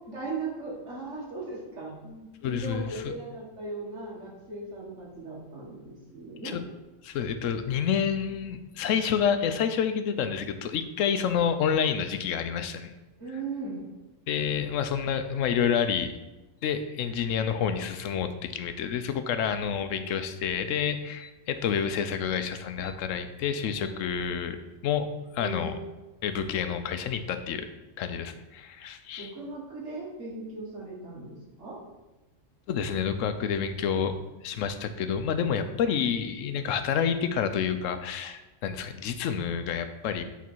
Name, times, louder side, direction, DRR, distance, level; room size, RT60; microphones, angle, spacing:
voice 1, 0.1-6.6 13.2-13.9 25.4-25.7 29.2-31.8, right 3 dB, 65° right, -5 dB, 2.3 m, -38 dB
voice 2, 2.4-3.1 6.4-6.6 7.0-12.9 14.3-16.1 16.6-24.6 24.8-25.1 25.3-25.8 26.2-27.7 28.0-29.3 32.7-34.2 34.4-40.2, left 7 dB, 85° left, 9 dB, 1.0 m, -28 dB
8.3 x 4.1 x 4.5 m, 1.1 s
omnidirectional pair, 1.3 m